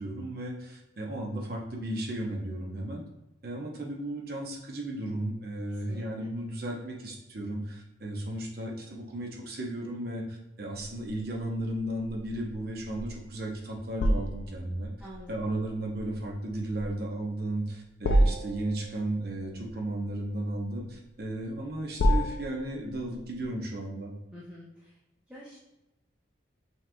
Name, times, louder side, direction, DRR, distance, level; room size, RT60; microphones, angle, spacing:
voice 1, 0.0-3.0 3.4-14.9 15.3-24.1, right 1 dB, 55° right, 0 dB, 0.8 m, -35 dB
voice 2, 5.7-6.3 15.0-15.4 24.3-25.0 25.3-25.6, equal, 5° right, -7 dB, 0.6 m, -47 dB
sound 1, 10.8-23.5, equal, 65° left, 0.4 m, -31 dB
5.5 x 3.0 x 2.2 m, 0.98 s
head